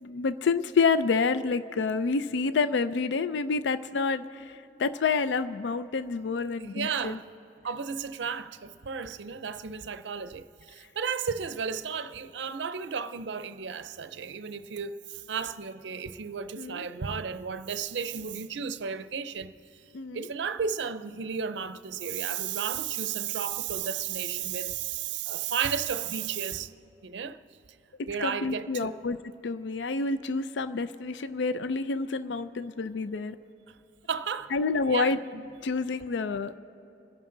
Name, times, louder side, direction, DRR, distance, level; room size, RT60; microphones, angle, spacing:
voice 1, 0.0-7.2 16.6-16.9 19.9-20.3 28.0-29.2 29.4-33.4 34.5-35.2 35.6-36.6, left 4 dB, 75° left, 0.4 m, -28 dB
voice 2, 6.6-7.2 7.6-19.5 20.1-26.7 27.0-27.4 28.1-29.0 34.1-34.5 34.9-35.4, right 7 dB, 75° right, 0.5 m, -33 dB
27.0 x 11.0 x 3.8 m
head